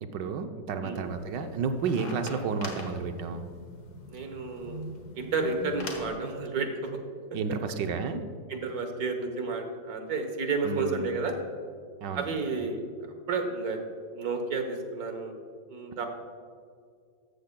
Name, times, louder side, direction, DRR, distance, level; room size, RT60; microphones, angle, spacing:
voice 1, 0.0-3.5 7.3-8.2 10.6-11.1 12.0-12.3, right 5 dB, 75° right, 7 dB, 1.3 m, -31 dB
sound 1, 1.0-6.2, left 2 dB, 60° left, 1.8 m, -43 dB
voice 2, 4.1-4.9 5.1-7.0 8.5-11.3 12.1-12.8 13.3-13.8 14.1-15.3 15.7-16.1, right 4 dB, 60° right, 5 dB, 1.5 m, -31 dB
13.5 x 13.5 x 2.2 m, 2.2 s
omnidirectional pair, 1.9 m